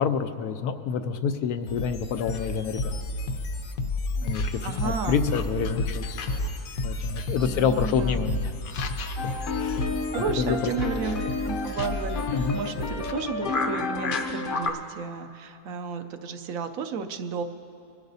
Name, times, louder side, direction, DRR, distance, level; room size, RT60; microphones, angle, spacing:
voice 1, 0.0-2.9 4.2-6.2 6.8-8.4 9.6-9.9 10.4-10.7 12.3-12.6, left 7 dB, 90° left, 8 dB, 1.2 m, -27 dB
sound 1, 1.7-13.1, left 2 dB, 70° left, 1.2 m, -31 dB
voice 2, 4.6-5.3 7.5-8.4 10.1-17.4, right 5 dB, 70° right, 9 dB, 1.0 m, -33 dB
sound 2, 9.2-14.7, left 4 dB, 50° left, 0.7 m, -30 dB
22.5 x 12.0 x 2.7 m, 2.7 s
omnidirectional pair, 1.6 m